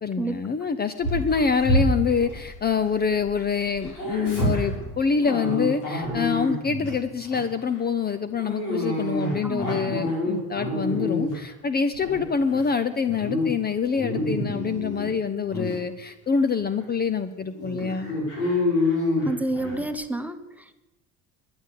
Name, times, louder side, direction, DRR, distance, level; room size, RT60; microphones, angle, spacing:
voice 1, 0.0-18.1, left 5 dB, 25° left, 11 dB, 0.7 m, -26 dB
Dog, 1.0-3.3 3.6-6.9 7.3-7.6 8.4-11.5 11.9-12.7 13.0-13.5 13.8-15.1 15.5-15.7 16.4-16.5 16.8-16.9 17.5-19.8, left 1 dB, 85° left, 5.5 m, -27 dB
voice 2, 9.4-10.0 19.2-20.7, right 2 dB, 5° right, 9 dB, 1.1 m, -30 dB
11.0 x 9.8 x 8.4 m, 1.1 s
supercardioid pair, 90°, 35 cm